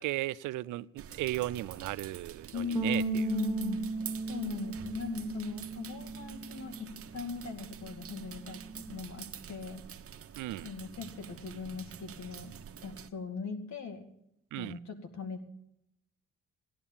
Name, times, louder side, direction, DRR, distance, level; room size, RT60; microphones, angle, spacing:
voice 1, 0.0-3.0 10.4-10.7 14.5-14.8, right 16 dB, 85° right, 0.5 m, -35 dB
sound 1, 1.0-13.1, right 8 dB, 50° right, 1.1 m, -47 dB
voice 2, 2.5-3.9 4.3-9.8 10.6-12.5 12.8-14.1 14.6-15.4, left 5 dB, 65° left, 2.3 m, -39 dB
Bass guitar, 2.8-9.0, right 4 dB, 15° right, 0.6 m, -37 dB
15.5 x 11.0 x 7.2 m
cardioid pair, 90°, 30 cm